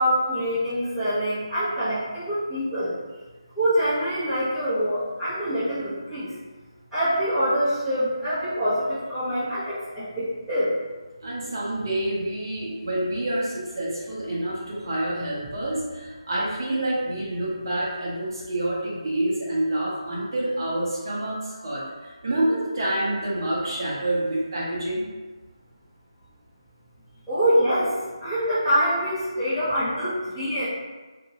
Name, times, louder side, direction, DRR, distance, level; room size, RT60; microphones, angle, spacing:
voice 1, 0.0-2.9 3.6-6.3 6.9-10.7 27.3-27.9 28.2-30.6, equal, 5° left, -21 dB, 1.1 m, -25 dB
voice 2, 11.2-25.0, right 1 dB, 45° right, -6 dB, 0.9 m, -27 dB
2.8 x 2.6 x 2.8 m, 1.3 s
figure-of-eight pair, 160°, 3 cm